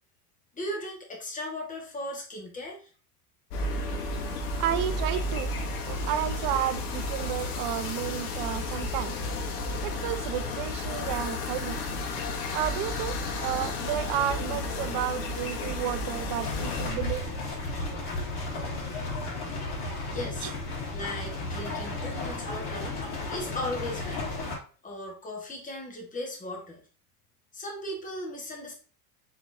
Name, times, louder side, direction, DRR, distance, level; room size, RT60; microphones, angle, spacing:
voice 1, 0.5-2.9 20.1-20.5 20.9-22.9 23.3-24.3 24.8-26.8 27.5-28.7, left 1 dB, 15° left, 1.5 m, -37 dB
sound 1, 3.5-16.9, left 2 dB, 75° left, 1.2 m, -32 dB
voice 2, 4.5-5.5 5.9-9.2 9.6-11.8 12.5-17.3 20.4-20.5, right 11 dB, 50° right, 0.5 m, -32 dB
sound 2, 16.4-24.6, left 2 dB, 50° left, 2.3 m, -34 dB
4.2 x 4.0 x 2.6 m
supercardioid pair, 110°, 47 cm